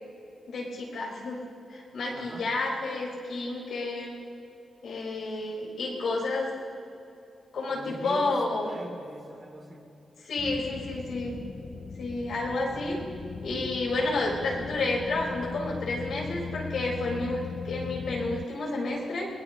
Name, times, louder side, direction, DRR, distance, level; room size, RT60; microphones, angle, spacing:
voice 1, 0.5-1.4 1.7-4.1 4.8-6.5 7.5-8.7 10.2-11.3 12.0-13.0 13.4-19.3, left 2 dB, 75° left, -4 dB, 4.5 m, -30 dB
voice 2, 2.1-2.5 7.7-9.9, right 1 dB, 40° right, 1 dB, 2.8 m, -43 dB
sound 1, 10.4-18.4, left 5 dB, 55° left, 0.4 m, -39 dB
22.5 x 19.0 x 3.0 m, 2.7 s
supercardioid pair, 50°, 0 cm